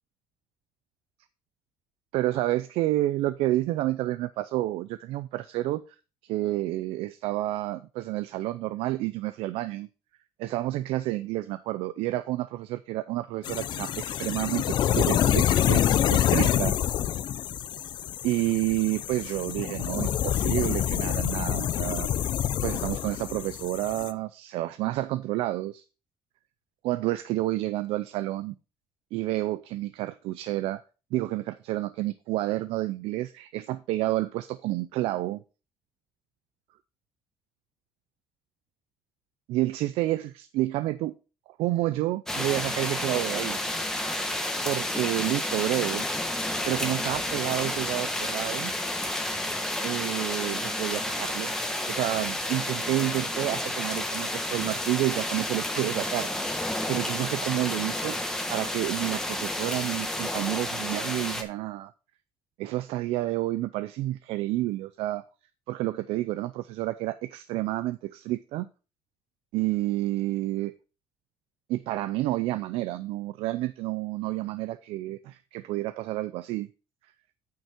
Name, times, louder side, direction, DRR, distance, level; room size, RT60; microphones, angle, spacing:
voice 1, 2.1-5.8 6.2-9.9 10.4-16.9 18.2-22.3 22.6-25.8 26.8-28.5 29.1-30.8 31.1-35.4 39.5-41.1 41.6-43.6 44.6-46.1 46.7-48.7 49.8-51.5 51.9-56.3 56.9-58.2 58.5-61.9 62.6-65.2 65.7-68.7 69.5-70.7 71.7-76.7, right 16 dB, 80° right, 0.5 m, -29 dB
sound 1, 13.4-24.1, left 11 dB, 50° left, 0.5 m, -26 dB
sound 2, 42.3-61.4, left 1 dB, 5° left, 1.2 m, -31 dB
9.1 x 5.6 x 4.4 m
cardioid pair, 125°, 10 cm